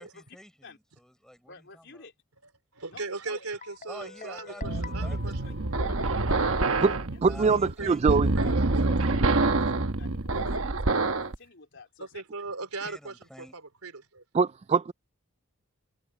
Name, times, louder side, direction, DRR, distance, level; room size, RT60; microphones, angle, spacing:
voice 1, 0.0-2.1 3.9-5.5 7.2-8.1 12.8-13.5, equal, 5° left, 5.8 m, -48 dB
voice 2, 1.5-2.1 2.9-3.6 5.1-5.5 5.8-7.2 8.9-12.2, left 3 dB, 55° left, 4.0 m, -49 dB
voice 3, 2.7-5.9 7.3-9.0 12.0-14.2, right 3 dB, 85° right, 3.7 m, -39 dB
Guitar, 3.6-6.4, left 5 dB, 40° left, 4.9 m, -47 dB
sound 1, 4.6-11.3, right 3 dB, 65° right, 1.2 m, -26 dB
voice 4, 7.2-8.3 14.3-14.9, right 5 dB, 30° right, 0.3 m, -23 dB
head